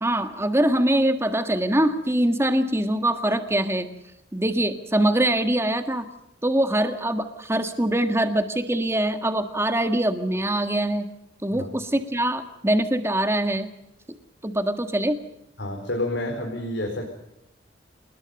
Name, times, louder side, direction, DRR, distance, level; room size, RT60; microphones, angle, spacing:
voice 1, 0.0-3.9 4.3-6.1 6.4-11.1 11.4-13.7 14.4-15.2, right 1 dB, 15° right, 7 dB, 1.7 m, -23 dB
voice 2, 15.6-17.1, left 1 dB, 70° left, 1 dB, 4.4 m, -29 dB
28.0 x 20.5 x 5.4 m, 0.85 s
head